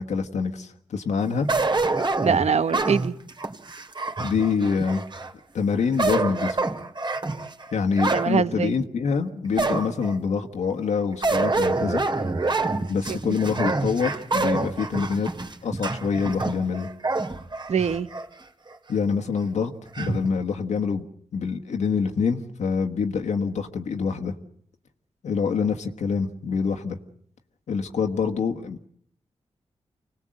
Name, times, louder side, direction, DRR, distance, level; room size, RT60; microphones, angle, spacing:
voice 1, 0.0-1.5 4.2-5.0 5.5-6.6 7.7-12.0 12.9-15.3 15.6-16.9 18.9-21.1 21.3-24.3 25.2-27.0 27.7-28.8, left 5 dB, 85° left, 1.5 m, -26 dB
sound 1, 1.5-5.3 5.8-8.3 8.8-8.9 9.6-10.2 11.2-18.3 18.7-18.8 19.9-20.3, right 3 dB, 40° right, 2.6 m, -26 dB
voice 2, 2.2-3.1 8.1-8.7 13.1-13.4 17.7-18.1, right 6 dB, 70° right, 1.1 m, -23 dB
25.5 x 19.0 x 7.7 m
cardioid pair, 65°, 12 cm